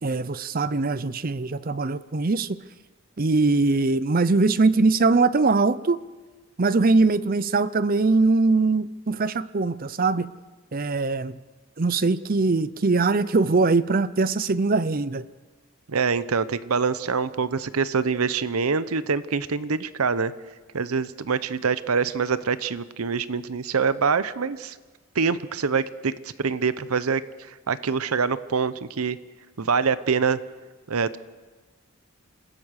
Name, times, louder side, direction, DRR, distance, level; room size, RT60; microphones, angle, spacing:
voice 1, 0.0-2.6 3.2-6.0 6.6-10.3 10.7-11.4 11.8-15.2, right 3 dB, 40° right, 17 dB, 0.6 m, -22 dB
voice 2, 15.9-20.3 20.7-24.8 25.1-26.1 26.4-27.2 27.5-29.2 29.6-30.4 30.9-31.2, right 5 dB, 80° right, 16 dB, 0.8 m, -25 dB
27.5 x 16.0 x 6.5 m, 1.3 s
head